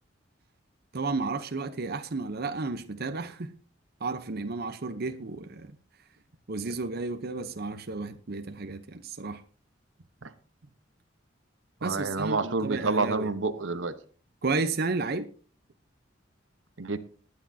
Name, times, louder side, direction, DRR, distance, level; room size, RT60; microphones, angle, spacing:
voice 1, 0.9-3.5 4.0-5.7 6.5-9.4 11.8-13.3 14.4-15.3, right 3 dB, 55° right, 0.8 m, -32 dB
voice 2, 11.8-13.9 16.8-17.0, right 3 dB, 85° right, 1.0 m, -28 dB
19.0 x 9.7 x 2.8 m
head